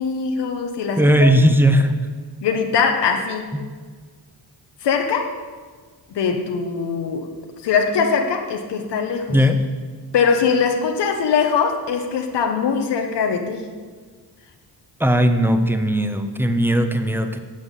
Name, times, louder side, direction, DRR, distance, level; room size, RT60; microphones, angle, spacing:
voice 1, 0.0-1.3 2.4-3.5 4.8-5.4 6.1-7.3 7.6-9.4 10.1-13.7, left 6 dB, 80° left, 4 dB, 1.3 m, -21 dB
voice 2, 1.0-1.9 9.3-9.7 15.0-17.4, equal, 5° right, 7 dB, 1.2 m, -17 dB
11.5 x 7.4 x 8.2 m, 1.5 s
cardioid pair, 75°, 41 cm